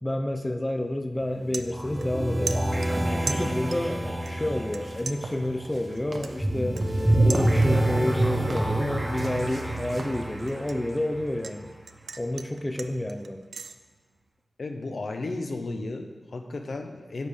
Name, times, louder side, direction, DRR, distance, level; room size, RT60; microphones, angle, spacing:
voice 1, 0.0-2.6 3.1-6.8 7.1-11.7 12.2-13.4, left 1 dB, 20° left, 6 dB, 0.6 m, -29 dB
sound 1, 0.6-0.8 1.2-2.2 2.5-4.0 4.3-4.8 5.1-8.0 8.4-8.7 9.1-11.6 11.9-13.7, right 5 dB, 85° right, 0.4 m, -39 dB
sound 2, 1.2-11.9, right 1 dB, 20° right, 1.2 m, -27 dB
sound 3, 4.8-10.2, right 2 dB, 55° right, 0.9 m, -41 dB
voice 2, 14.6-17.3, left 2 dB, 65° left, 5 dB, 0.8 m, -34 dB
9.4 x 6.6 x 3.6 m, 1.3 s
cardioid pair, 50°, 0 cm